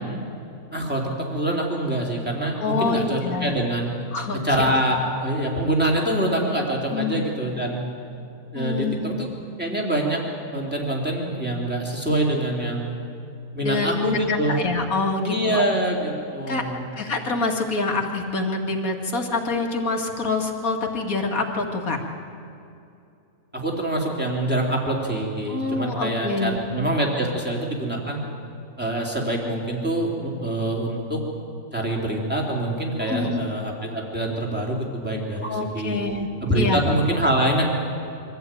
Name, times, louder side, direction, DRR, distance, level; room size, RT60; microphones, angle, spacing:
voice 1, 0.7-1.0 1.3-3.9 4.4-7.8 8.5-9.3 9.6-10.2 10.5-13.0 13.5-14.6 15.2-17.0 23.5-28.2 28.8-31.2 31.7-36.0 36.4-37.6, right 1 dB, 5° right, -2 dB, 3.4 m, -25 dB
voice 2, 2.6-3.6 4.1-4.7 6.9-7.2 8.5-9.3 13.6-15.6 16.5-16.6 16.9-22.0 25.5-26.6 33.0-33.4 35.4-36.3 36.5-36.8, left 3 dB, 65° left, 2 dB, 2.4 m, -26 dB
24.5 x 15.0 x 9.2 m, 2.7 s
omnidirectional pair, 1.6 m